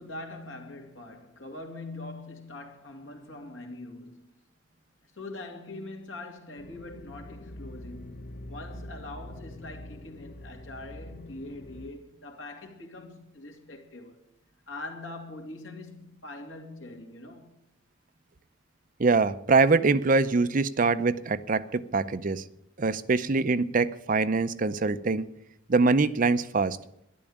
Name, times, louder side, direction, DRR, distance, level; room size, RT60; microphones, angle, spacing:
voice 1, 0.0-4.3 5.1-14.2 14.7-17.6, left 2 dB, 75° left, 2.7 m, -43 dB
sound 1, 6.6-11.9, left 1 dB, 50° left, 0.9 m, -44 dB
voice 2, 19.0-22.4 22.8-25.3 25.7-26.8, right 3 dB, 45° right, 0.6 m, -24 dB
12.5 x 11.0 x 8.6 m
head